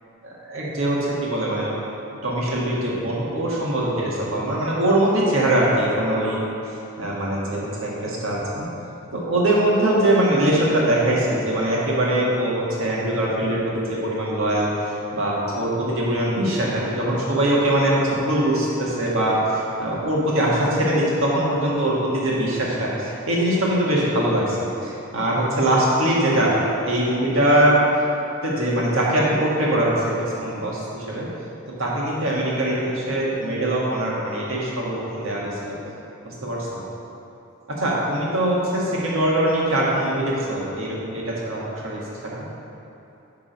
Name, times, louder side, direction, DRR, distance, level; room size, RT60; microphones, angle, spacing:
voice 1, 0.2-1.7 2.2-6.4 7.0-8.7 9.1-13.6 13.9-14.7 15.1-27.8 28.4-31.3 31.8-35.8 36.2-36.8 37.8-42.4, right 1 dB, 75° right, -5 dB, 1.6 m, -22 dB
10.0 x 3.8 x 5.2 m, 2.8 s
head